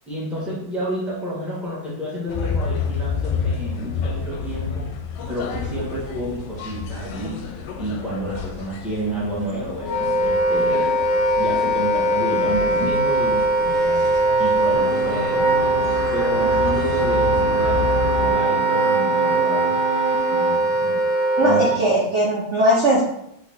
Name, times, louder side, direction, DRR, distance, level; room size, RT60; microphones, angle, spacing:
voice 1, 0.1-4.9 5.3-10.9 11.4-13.4 14.4-15.5 16.1-19.8 20.3-21.0 21.4-21.8, right 1 dB, ahead, -7 dB, 1.1 m, -30 dB
sound 1, 2.3-18.3, left 6 dB, 75° left, 1.2 m, -30 dB
Wind instrument woodwind instrument, 9.8-21.8, right 2 dB, 50° left, 0.8 m, -20 dB
sound 2, 14.7-20.6, right 3 dB, 70° right, 1.2 m, -30 dB
voice 2, 21.4-23.0, right 1 dB, 55° right, -4 dB, 0.8 m, -19 dB
4.1 x 3.4 x 3.5 m, 0.79 s
omnidirectional pair, 2.0 m